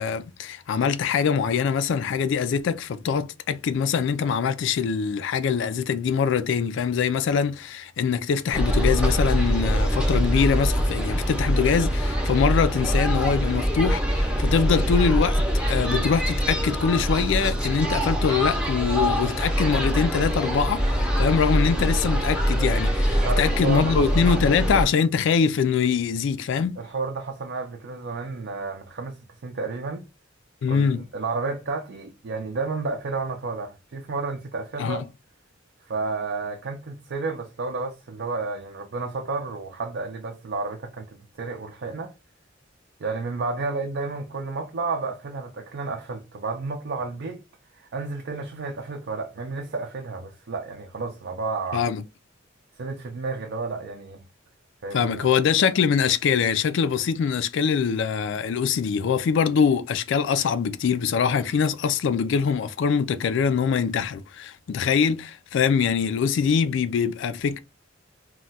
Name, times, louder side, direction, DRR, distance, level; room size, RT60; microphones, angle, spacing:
voice 1, 0.0-26.8 30.6-31.0 34.8-35.0 51.7-52.0 54.9-67.6, left 6 dB, 65° left, 0.3 m, -23 dB
sound 1, 8.5-24.8, equal, 5° right, 0.6 m, -24 dB
voice 2, 23.1-24.4 26.8-30.0 30.7-35.1 35.9-41.1 41.4-42.1 43.0-47.4 47.7-51.8 52.8-54.2 54.8-55.4, right 4 dB, 60° right, 0.5 m, -31 dB
2.3 x 2.2 x 3.9 m
head